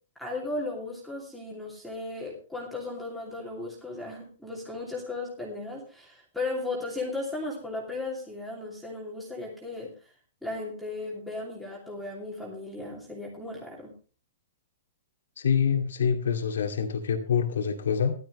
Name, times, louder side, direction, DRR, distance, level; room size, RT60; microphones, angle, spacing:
voice 1, 0.2-9.9 10.4-13.9, left 2 dB, ahead, -4 dB, 2.8 m, -36 dB
voice 2, 15.4-18.1, left 7 dB, 85° left, 4 dB, 2.3 m, -26 dB
15.0 x 12.0 x 3.2 m, 0.38 s
hypercardioid pair, 165°, 0 cm